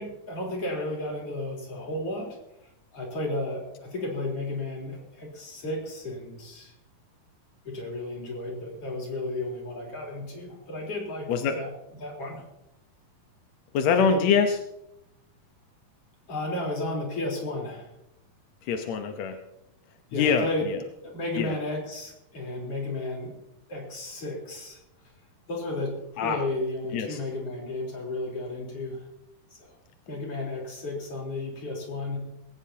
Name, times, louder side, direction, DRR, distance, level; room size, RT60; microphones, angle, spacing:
voice 1, 0.0-2.4 2.9-6.7 7.7-11.7 12.0-12.4 14.0-14.2 16.3-17.9 20.1-20.7 21.0-23.3 23.7-24.8 25.5-29.0 29.5-29.8 30.1-32.3, left 2 dB, 40° left, -1 dB, 4.6 m, -33 dB
voice 2, 13.7-14.6 18.6-19.4 20.1-20.8 21.4-21.5 26.2-26.4 26.9-27.2, left 6 dB, 70° left, 5 dB, 1.7 m, -24 dB
20.0 x 18.0 x 2.9 m, 0.84 s
omnidirectional pair, 4.2 m